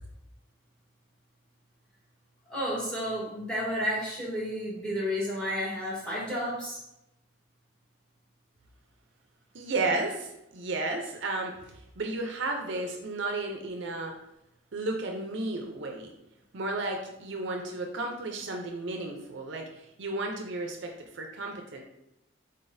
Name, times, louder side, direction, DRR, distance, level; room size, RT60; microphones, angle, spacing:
voice 1, 2.5-6.8 12.7-12.8, equal, 5° left, -5 dB, 1.2 m, -31 dB
voice 2, 9.5-14.1 14.7-16.1 16.5-21.8, right 2 dB, 60° right, 2 dB, 0.5 m, -33 dB
3.9 x 3.9 x 2.6 m, 0.85 s
head